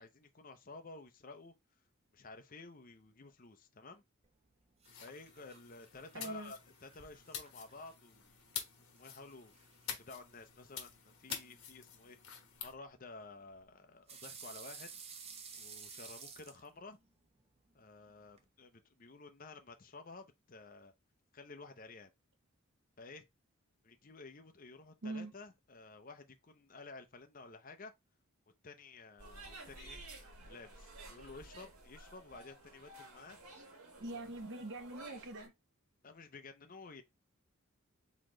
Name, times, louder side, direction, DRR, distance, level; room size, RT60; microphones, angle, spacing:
voice 1, 0.0-1.5 2.1-4.0 5.0-8.4 8.8-12.2 12.6-14.9 15.5-17.0 17.7-20.9 21.3-22.1 23.0-23.2 23.8-27.9 28.6-30.1 30.5-33.4 34.1-34.2 36.0-37.0, left 3 dB, 40° left, 0.7 m, -53 dB
sound 1, 4.2-18.5, right 5 dB, 30° right, 0.7 m, -56 dB
sound 2, 4.8-12.7, left 8 dB, 80° left, 1.2 m, -48 dB
voice 2, 6.1-6.5 25.0-25.3 34.0-35.5, right 2 dB, 55° right, 1.0 m, -43 dB
sound 3, 29.2-35.5, right 2 dB, 90° right, 1.5 m, -53 dB
4.1 x 3.8 x 3.1 m
head